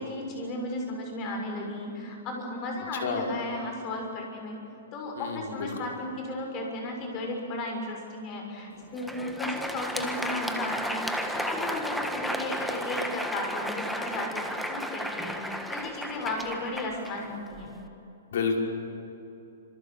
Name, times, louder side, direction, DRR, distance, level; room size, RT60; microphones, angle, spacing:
voice 1, 0.0-4.6 4.9-14.4 14.7-17.7, left 2 dB, 25° left, 2 dB, 6.5 m, -35 dB
voice 2, 2.9-3.3 5.2-5.8 18.3-18.6, left 5 dB, 65° left, 2 dB, 5.5 m, -30 dB
Crowd, 8.8-17.8, equal, ahead, 1.4 m, -33 dB
28.5 x 26.5 x 7.4 m, 2.9 s
hypercardioid pair, 160°, 0 cm